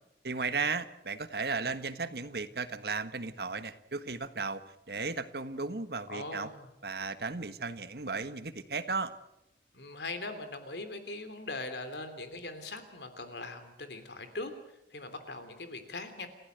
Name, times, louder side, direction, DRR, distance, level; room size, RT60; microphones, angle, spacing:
voice 1, 0.2-4.6 4.9-6.5 6.8-9.1, right 4 dB, 60° right, 10 dB, 1.5 m, -35 dB
voice 2, 6.1-6.7 9.7-14.5 14.9-16.3, left 2 dB, 75° left, 9 dB, 3.1 m, -41 dB
29.0 x 15.5 x 8.1 m, 0.86 s
head